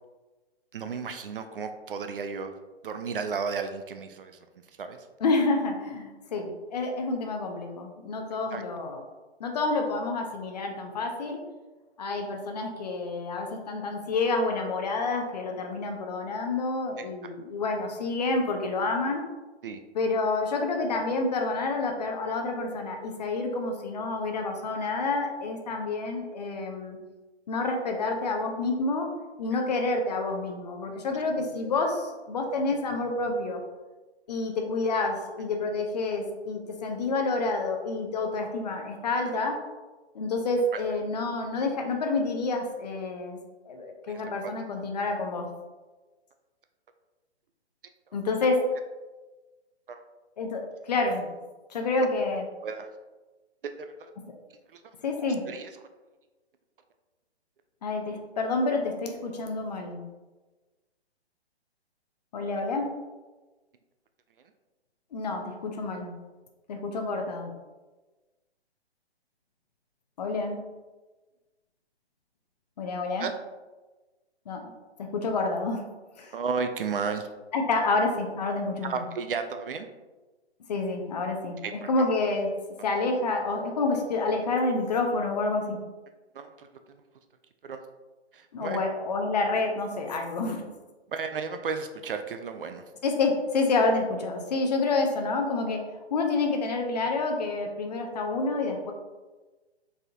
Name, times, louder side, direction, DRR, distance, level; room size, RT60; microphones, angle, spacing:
voice 1, 0.7-2.5 2.8-5.1 8.5-8.6 17.2-17.3 19.6-19.8 31.1-31.2 40.7-40.8 44.1-44.3 48.1-48.2 48.6-48.7 49.9-50.0 52.0-52.1 52.6-52.9 53.6-54.1 54.7-54.8 55.2-55.7 73.2-73.3 76.3-77.3 78.8-79.9 81.6-82.1 86.3-87.0 87.6-87.8 88.3-88.8 91.1-92.8, right 5 dB, 55° right, 7 dB, 0.4 m, -34 dB
voice 2, 5.2-9.0 9.4-11.4 12.0-19.2 19.9-27.0 27.5-29.1 29.4-33.6 34.3-39.6 40.1-43.4 43.7-45.5 48.1-48.6 50.4-50.6 50.9-51.3 51.7-52.4 55.0-55.4 57.8-60.0 62.3-62.9 65.1-66.1 66.7-67.5 70.2-70.6 72.8-73.2 74.5-74.6 75.1-75.8 76.2-76.3 77.5-78.9 80.7-81.6 81.9-82.5 82.8-85.8 88.5-90.6 93.0-95.8 96.1-98.9, left 3 dB, 40° left, 3 dB, 0.6 m, -28 dB
4.2 x 3.5 x 2.7 m, 1.2 s
figure-of-eight pair, 130°, 33 cm